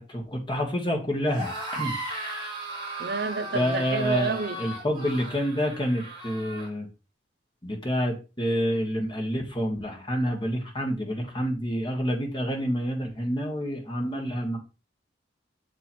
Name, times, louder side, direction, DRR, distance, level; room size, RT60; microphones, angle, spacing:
voice 1, 0.0-2.0 3.5-6.9 7.6-14.6, equal, 25° left, 1.5 m, -28 dB
sound 1, 1.2-6.7, right 2 dB, 25° right, 2.6 m, -36 dB
voice 2, 3.0-4.6, right 4 dB, 55° right, 0.6 m, -29 dB
7.0 x 4.4 x 4.4 m
head